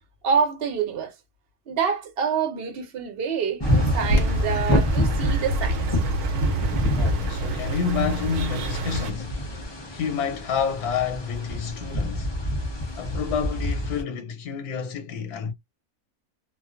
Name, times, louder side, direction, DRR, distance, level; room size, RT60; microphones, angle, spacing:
voice 1, 0.2-1.1 1.7-5.8 6.4-6.6, right 6 dB, 50° right, 0.8 m, -26 dB
sound 1, 3.6-14.0, left 1 dB, 30° left, 0.5 m, -27 dB
sound 2, 3.6-9.1, right 3 dB, 80° right, 1.1 m, -30 dB
Bird vocalization bird call bird song, 4.0-9.7, left 1 dB, 70° left, 0.9 m, -32 dB
voice 2, 6.9-9.4 9.9-12.3 13.0-15.5, left 6 dB, 90° left, 1.2 m, -29 dB
2.5 x 2.3 x 2.3 m
omnidirectional pair, 1.6 m